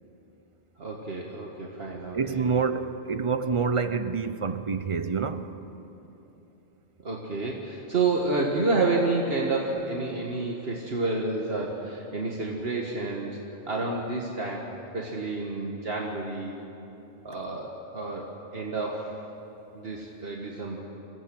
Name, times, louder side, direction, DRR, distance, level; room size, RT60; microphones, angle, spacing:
voice 1, 0.8-2.5 7.0-13.4 13.7-14.6 14.9-16.6 17.2-19.2 19.7-20.8, right 3 dB, 60° right, -2 dB, 1.9 m, -29 dB
voice 2, 2.1-5.4, right 5 dB, 30° right, 11 dB, 0.7 m, -27 dB
25.5 x 16.0 x 7.7 m, 3.0 s
omnidirectional pair, 1.2 m